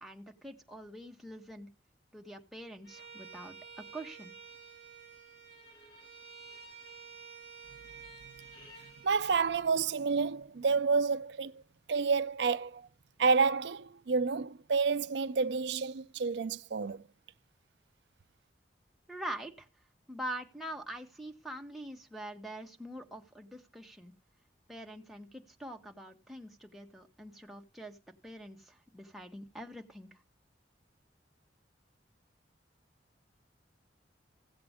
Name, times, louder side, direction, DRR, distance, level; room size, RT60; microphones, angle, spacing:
voice 1, 0.0-1.7 2.1-4.3 19.1-19.7 20.1-24.1 24.7-28.0 28.2-30.2, right 1 dB, ahead, 1.1 m, -44 dB
Bowed string instrument, 2.8-9.1, right 5 dB, 65° left, 6.3 m, -51 dB
voice 2, 9.0-11.6 11.9-12.9 13.2-17.1, right 5 dB, 65° right, 0.5 m, -29 dB
15.0 x 7.7 x 3.5 m
head